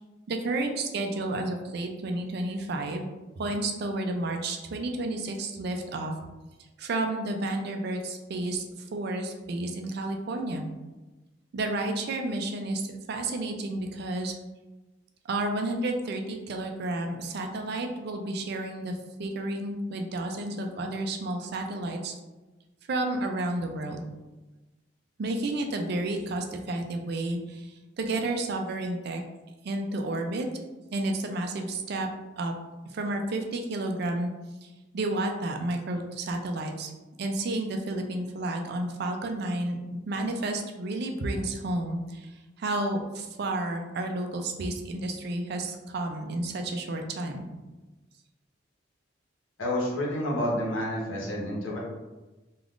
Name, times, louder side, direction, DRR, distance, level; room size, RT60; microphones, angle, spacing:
voice 1, 0.3-3.1 3.4-6.1 6.8-8.7 8.9-10.6 11.5-14.4 15.3-22.1 22.9-24.0 25.2-29.2 29.6-30.5 30.9-32.1 32.4-32.5 32.9-34.3 34.6-34.7 34.9-36.9 37.2-39.8 40.1-42.3 42.6-47.5, right 2 dB, 55° right, 4 dB, 0.4 m, -31 dB
voice 2, 49.6-51.8, left 1 dB, 90° left, -3 dB, 0.9 m, -29 dB
3.4 x 2.4 x 2.4 m, 1.1 s
head